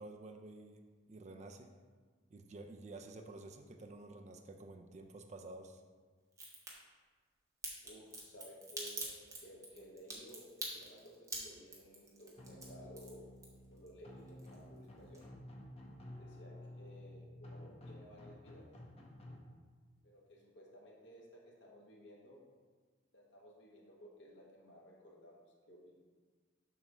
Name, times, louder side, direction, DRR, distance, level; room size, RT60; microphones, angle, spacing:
voice 1, 0.0-1.7 2.3-5.8, right 2 dB, 35° right, 5 dB, 0.4 m, -51 dB
Crack, 6.3-6.7 7.6-13.9 14.2-14.9 15.1-15.2, right 2 dB, 15° right, 1.1 m, -45 dB
voice 2, 7.8-13.3 13.7-15.3 16.2-18.7 20.0-22.4 23.1-25.4 25.7-26.0, equal, 65° left, -3 dB, 1.5 m, -56 dB
sound 1, 12.4-19.4, left 1 dB, 30° left, 0.9 m, -52 dB
7.3 x 3.3 x 6.0 m, 1.5 s
head